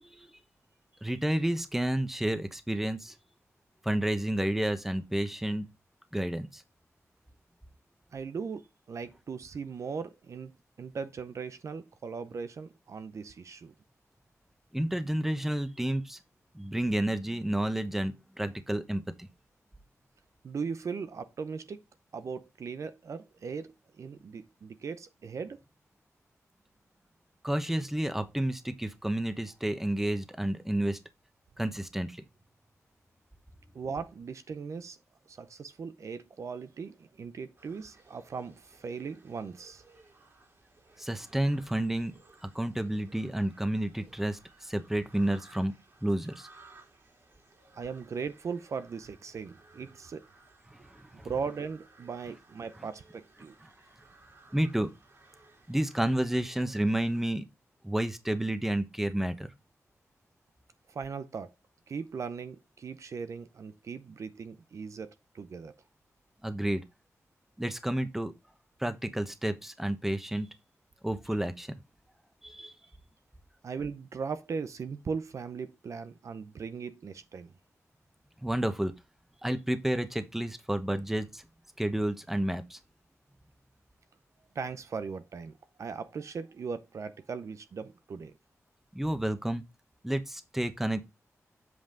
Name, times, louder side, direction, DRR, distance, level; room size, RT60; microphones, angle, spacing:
voice 1, 0.0-0.4 1.0-3.1 3.8-5.7 6.1-6.6 14.7-16.2 16.5-19.3 27.4-31.0 31.6-32.2 41.0-42.1 42.4-45.7 46.0-46.5 50.9-51.3 54.5-54.9 55.7-57.4 57.8-59.5 66.4-66.8 67.6-68.3 68.8-70.5 71.0-71.8 72.4-72.7 78.4-78.9 79.4-81.4 81.8-82.8 88.9-89.6 90.0-91.0, right 1 dB, 5° right, 1.0 m, -30 dB
voice 2, 8.1-10.5 10.8-13.7 20.4-21.8 22.1-25.6 33.7-35.0 35.3-39.8 47.7-50.3 51.2-53.5 60.9-61.5 61.9-65.7 73.6-77.5 84.5-88.3, right 5 dB, 65° right, 0.6 m, -38 dB
sound 1, 37.6-57.2, right 3 dB, 50° right, 3.1 m, -59 dB
7.8 x 5.4 x 3.9 m
wide cardioid pair, 140°, 6 cm